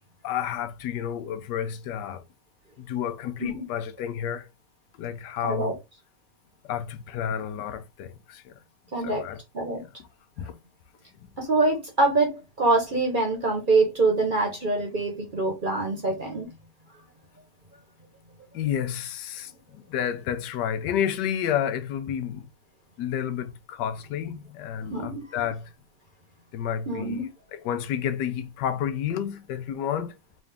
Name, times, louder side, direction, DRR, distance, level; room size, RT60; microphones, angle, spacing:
voice 1, 0.2-2.2 2.8-4.5 5.0-5.8 6.6-8.5 9.0-9.4 9.7-9.9 10.4-10.5 18.5-22.5 23.0-25.7 26.5-27.2 27.5-30.1, left 9 dB, 85° left, 1.2 m, -30 dB
voice 2, 5.4-5.7 8.9-9.2 9.5-9.8 11.4-16.5 24.9-25.2 26.9-27.3, right 2 dB, 35° right, 0.9 m, -25 dB
3.9 x 2.5 x 3.4 m
omnidirectional pair, 1.8 m